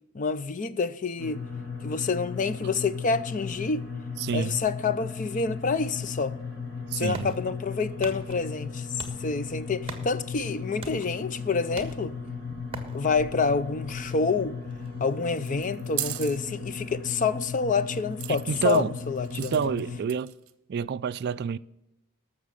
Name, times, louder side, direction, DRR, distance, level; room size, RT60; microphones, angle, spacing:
voice 1, 0.1-1.4 1.8-3.9 4.3-6.4 7.0-8.9 9.2-12.2 12.9-14.6 15.0-19.6, left 4 dB, 35° left, 0.5 m, -28 dB
sound 1, 1.2-20.0, left 5 dB, 80° left, 5.5 m, -36 dB
voice 2, 4.2-4.6 6.9-7.3 18.3-18.9 19.4-20.3 20.7-21.6, right 6 dB, 45° right, 0.3 m, -28 dB
sound 2, 6.4-17.9, right 3 dB, 25° right, 1.5 m, -47 dB
sound 3, 15.4-16.4 18.2-18.8 19.2-19.8 20.1-20.5, right 16 dB, 65° right, 0.8 m, -35 dB
12.5 x 7.3 x 6.5 m
head